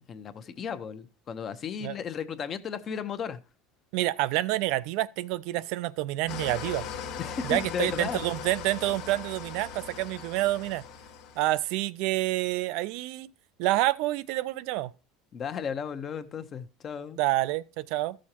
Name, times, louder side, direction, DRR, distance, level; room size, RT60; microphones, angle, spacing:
voice 1, 0.0-3.4 7.2-8.2 15.3-17.2, left 7 dB, 35° left, 0.9 m, -34 dB
voice 2, 3.9-6.8 7.4-10.8 11.4-13.3 13.6-14.9 17.2-18.2, right 16 dB, 65° right, 0.4 m, -28 dB
Engine starting / Idling, 6.3-11.7, left 6 dB, 65° left, 1.2 m, -39 dB
13.5 x 6.4 x 2.9 m
supercardioid pair, 125°, 0 cm